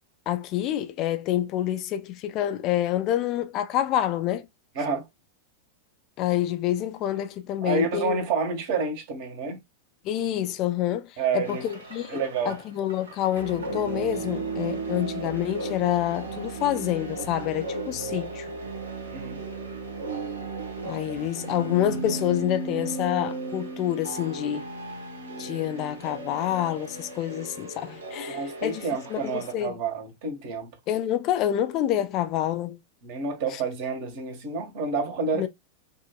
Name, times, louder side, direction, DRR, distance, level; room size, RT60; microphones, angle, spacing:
voice 1, 0.3-4.4 6.2-8.2 10.0-12.2 12.5-18.5 20.8-24.6 25.4-28.9 29.1-29.7 30.9-32.8 33.5-33.6 35.4-35.5, left 12 dB, 40° left, 0.5 m, -27 dB
voice 2, 4.7-5.1 7.6-9.6 11.2-11.6 12.1-12.6 18.0-18.2 19.1-19.4 28.3-30.7 33.0-35.5, right 4 dB, 50° right, 1.6 m, -29 dB
sound 1, 11.4-29.5, right 3 dB, 70° right, 1.4 m, -35 dB
5.4 x 2.8 x 2.3 m
figure-of-eight pair, 90°, 0 cm